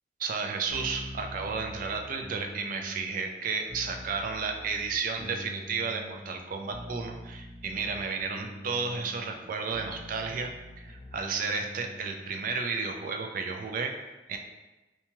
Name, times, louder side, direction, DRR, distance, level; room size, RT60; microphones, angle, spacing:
voice 1, 0.2-10.5 10.8-14.4, right 4 dB, 50° right, 4 dB, 0.3 m, -33 dB
sound 1, 0.7-12.6, equal, 45° left, 0.6 m, -45 dB
2.7 x 2.2 x 2.9 m, 1.1 s
head